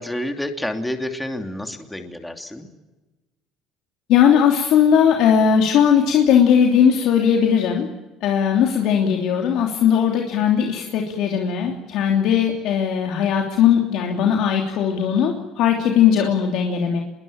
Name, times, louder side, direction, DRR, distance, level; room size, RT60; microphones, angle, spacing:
voice 1, 0.0-2.7, left 1 dB, 5° left, 5 dB, 2.8 m, -29 dB
voice 2, 4.1-7.9 8.2-17.0, left 8 dB, 65° left, 1 dB, 3.1 m, -18 dB
26.5 x 22.0 x 8.8 m, 1.1 s
cardioid pair, 130°, 0 cm